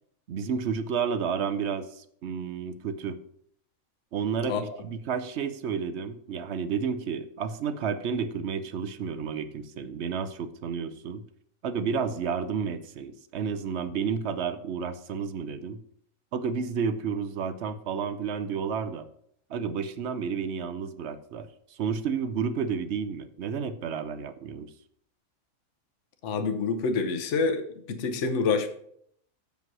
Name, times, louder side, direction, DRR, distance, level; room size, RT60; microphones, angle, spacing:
voice 1, 0.3-3.2 4.1-11.2 11.6-15.8 16.3-19.1 19.5-24.7, right 6 dB, 60° right, 12 dB, 0.8 m, -31 dB
voice 2, 26.2-28.7, left 4 dB, 60° left, 6 dB, 1.2 m, -27 dB
7.7 x 5.3 x 6.0 m, 0.66 s
omnidirectional pair, 1.5 m